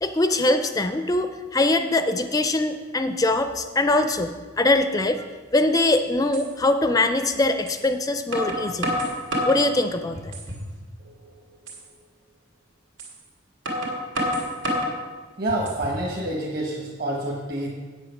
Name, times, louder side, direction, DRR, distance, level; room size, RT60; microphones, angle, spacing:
voice 1, 0.0-5.3 5.5-9.0 9.5-10.3, left 2 dB, 20° left, 8 dB, 0.4 m, -22 dB
sound 1, 6.3-6.5 7.7-7.8 8.3-9.6 10.1-10.7 11.1-11.2 11.7-11.8 13.0-13.1 13.6-15.0 15.5-16.0, equal, 75° right, 2.3 m, -28 dB
voice 2, 15.4-17.7, right 1 dB, 50° right, -3 dB, 1.3 m, -27 dB
8.5 x 7.9 x 5.8 m, 1.4 s
head